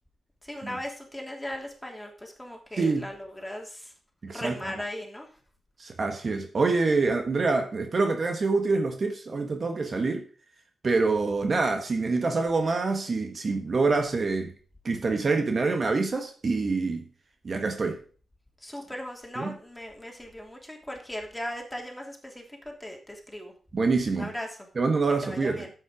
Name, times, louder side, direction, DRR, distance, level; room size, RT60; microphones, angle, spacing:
voice 1, 0.4-3.9 4.3-5.3 18.6-23.5 24.2-24.6 25.2-25.7, left 1 dB, 10° left, 3.2 m, -38 dB
voice 2, 2.8-3.1 4.2-4.6 5.8-10.2 10.8-14.5 14.8-17.0 17.4-18.0 19.4-19.5 23.7-24.3 24.7-25.6, right 3 dB, 55° right, 1.5 m, -26 dB
9.8 x 8.1 x 5.1 m
cardioid pair, 60°, 0 cm